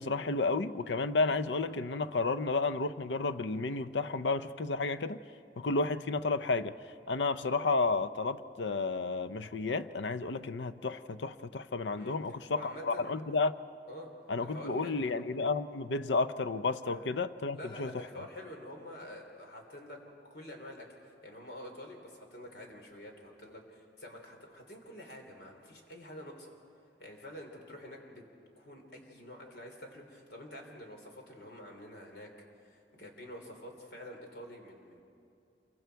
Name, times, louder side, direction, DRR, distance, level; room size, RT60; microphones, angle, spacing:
voice 1, 0.0-5.2 5.6-6.7 7.1-13.6 14.3-17.9, left 3 dB, 90° left, 12 dB, 0.6 m, -32 dB
voice 2, 12.5-13.1 13.9-14.1 14.4-15.1 16.8-17.1 17.5-26.6 27.0-28.2 28.6-32.3 32.6-35.0, left 1 dB, 70° left, 2 dB, 3.2 m, -48 dB
27.5 x 23.5 x 4.6 m, 2.6 s
head